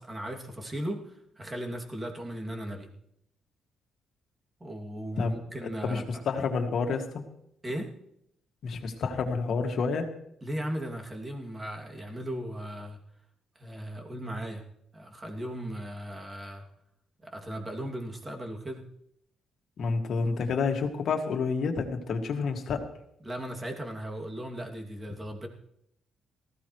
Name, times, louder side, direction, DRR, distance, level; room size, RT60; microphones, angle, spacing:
voice 1, 0.0-2.9 4.6-6.2 7.6-7.9 10.4-13.0 13.6-14.6 14.9-16.6 17.2-18.8 23.2-25.5, right 1 dB, 20° right, 1 dB, 2.6 m, -37 dB
voice 2, 5.8-7.2 8.6-10.1 19.8-22.9, left 4 dB, 65° left, 4 dB, 2.1 m, -29 dB
19.0 x 15.0 x 3.2 m, 0.75 s
cardioid pair, 90°, 0 cm